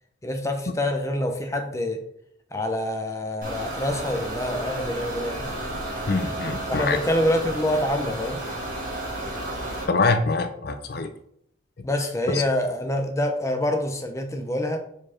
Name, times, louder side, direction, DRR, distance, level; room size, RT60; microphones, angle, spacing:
voice 1, 0.2-2.0 2.5-5.5 6.7-8.4 11.8-14.8, left 1 dB, 15° left, 4 dB, 0.7 m, -26 dB
sound 1, 3.4-9.8, right 1 dB, 40° right, 1.8 m, -32 dB
voice 2, 6.1-7.0 9.9-11.1 12.3-12.4, left 3 dB, 50° left, 8 dB, 0.5 m, -24 dB
4.8 x 4.6 x 4.3 m, 0.72 s
head